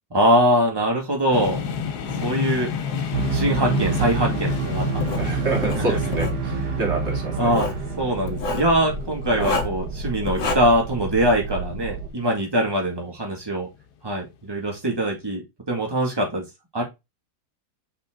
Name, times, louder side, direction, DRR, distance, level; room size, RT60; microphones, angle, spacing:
voice 1, 0.1-1.6 2.2-2.7 3.3-4.8 5.1-5.2 5.9-6.0 7.4-7.7 8.0-13.7 14.0-15.4 15.7-16.4 16.7-16.8, equal, 15° right, 0 dB, 2.1 m, -22 dB
sound 1, 1.3-13.1, left 7 dB, 80° left, 1.4 m, -31 dB
voice 2, 2.9-3.5 5.2-7.5 9.3-9.6, right 3 dB, 40° right, 0 dB, 2.7 m, -28 dB
sound 2, 3.1-12.1, right 6 dB, 80° right, 1.6 m, -29 dB
Writing, 5.0-5.2 5.6-6.4 7.4-7.8 8.3-8.7 9.3-9.8 10.3-10.6, left 4 dB, 55° left, 1.3 m, -28 dB
5.8 x 4.5 x 3.8 m, 0.22 s
omnidirectional pair, 1.7 m